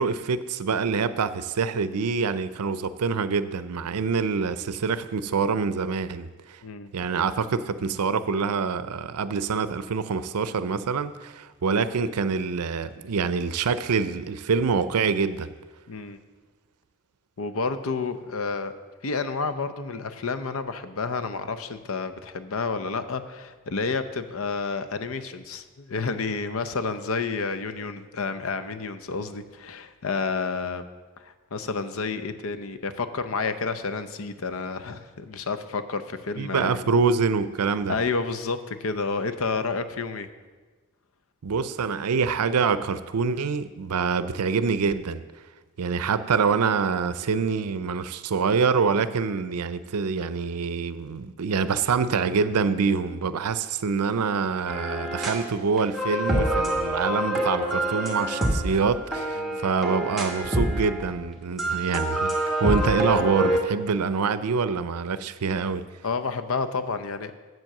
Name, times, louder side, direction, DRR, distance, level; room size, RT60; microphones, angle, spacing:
voice 1, 0.0-6.6 6.9-15.5 36.4-38.0 41.4-45.2 45.8-65.8, right 5 dB, 90° right, 13 dB, 0.5 m, -25 dB
voice 2, 15.9-16.2 17.4-18.7 19.0-30.8 31.2-36.9 37.9-40.3 59.3-59.6 66.0-67.3, left 4 dB, 65° left, 11 dB, 0.6 m, -30 dB
sound 1, 54.7-55.5 55.8-61.1 61.6-63.6, right 1 dB, ahead, 1.3 m, -26 dB
7.8 x 7.6 x 6.5 m, 1.3 s
head